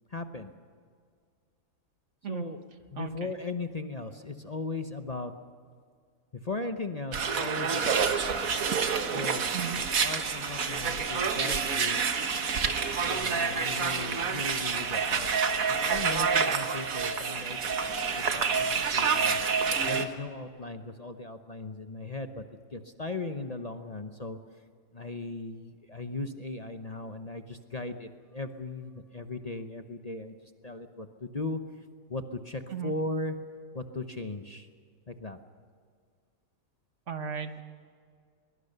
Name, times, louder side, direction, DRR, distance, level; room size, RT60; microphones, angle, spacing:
voice 1, 0.1-0.5 2.3-2.6 2.9-5.3 6.4-8.6 9.1-12.1 13.1-15.3 15.6-19.4 19.8-22.4 22.7-24.4 24.9-31.6 32.1-33.4 33.7-34.7 35.1-35.4, left 2 dB, 30° left, 7 dB, 0.9 m, -38 dB
voice 2, 3.0-3.3 9.5-9.8 32.7-32.9 37.1-37.6, right 7 dB, 60° right, 8 dB, 1.6 m, -35 dB
sound 1, 7.1-20.0, right 5 dB, 80° right, 1.7 m, -28 dB
sound 2, 9.1-15.7, equal, 80° left, 3.8 m, -48 dB
22.5 x 22.0 x 6.8 m, 2.1 s
omnidirectional pair, 1.5 m